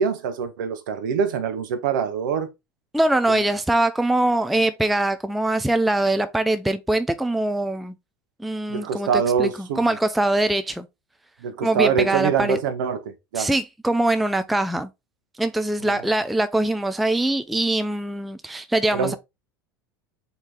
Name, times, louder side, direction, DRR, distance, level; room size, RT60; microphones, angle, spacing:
voice 1, 0.0-2.5 8.7-9.8 11.4-13.5 15.8-16.0 18.9-19.2, right 6 dB, 60° right, 0.8 m, -24 dB
voice 2, 2.9-7.9 8.4-10.9 11.6-12.6 13.4-14.9 15.4-19.2, right 1 dB, ahead, 0.3 m, -23 dB
4.4 x 2.8 x 3.3 m
figure-of-eight pair, 75°, 12 cm